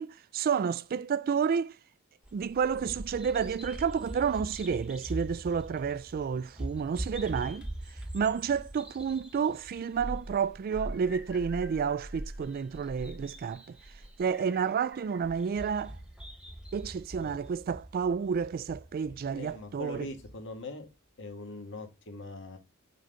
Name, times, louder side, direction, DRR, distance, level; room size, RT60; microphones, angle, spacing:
voice 1, 0.0-1.8 2.3-7.7 8.1-13.8 14.2-16.0 16.7-20.1, right 6 dB, 45° right, 0.3 m, -30 dB
Bird vocalization bird call bird song, 2.2-20.4, right 1 dB, 5° right, 1.2 m, -43 dB
voice 2, 19.3-20.9 21.2-22.6, left 2 dB, 60° left, 1.7 m, -42 dB
6.2 x 3.9 x 4.4 m
head